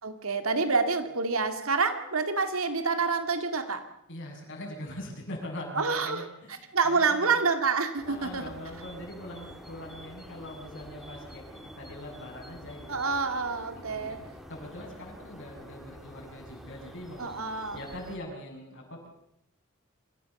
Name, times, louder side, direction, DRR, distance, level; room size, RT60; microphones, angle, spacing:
voice 1, 0.0-3.9 5.8-6.2 6.7-8.4 12.9-14.2 17.2-17.8, right 4 dB, 80° right, 7 dB, 2.3 m, -27 dB
voice 2, 4.1-7.4 8.0-13.0 13.7-17.3 17.7-19.1, left 1 dB, 60° left, 0 dB, 7.2 m, -42 dB
sound 1, 8.0-18.2, equal, ahead, 3.4 m, -47 dB
26.5 x 15.5 x 7.1 m, 0.78 s
head